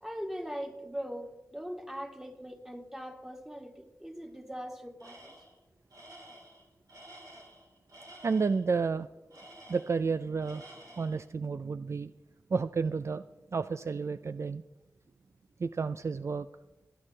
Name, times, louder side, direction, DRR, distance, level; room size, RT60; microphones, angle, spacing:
voice 1, 0.0-5.3, equal, 10° right, 2 dB, 2.1 m, -41 dB
Tools, 5.0-5.6 5.9-8.6 9.3-10.1 10.4-11.2, right 1 dB, 90° right, 3.9 m, -52 dB
voice 2, 8.2-9.1 9.7-10.6 11.0-12.1 12.5-13.2 13.5-14.6 15.6-16.5, right 5 dB, 50° right, 12 dB, 0.3 m, -31 dB
28.0 x 10.0 x 3.3 m, 1.1 s
wide cardioid pair, 65°, 6 cm